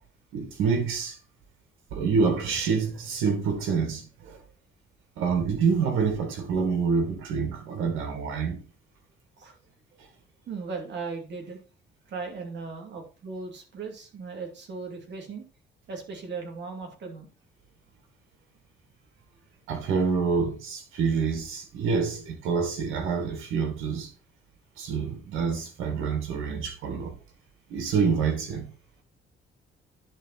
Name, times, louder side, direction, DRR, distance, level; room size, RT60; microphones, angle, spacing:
voice 1, 0.3-1.2 1.9-4.4 5.2-8.6 19.7-24.1 24.8-27.1 27.7-28.7, right 5 dB, 90° right, 2.3 m, -27 dB
voice 2, 10.5-11.6 12.1-15.4 15.9-17.3, right 4 dB, 65° right, 2.7 m, -37 dB
10.5 x 4.2 x 4.1 m
cardioid pair, 90°, 20 cm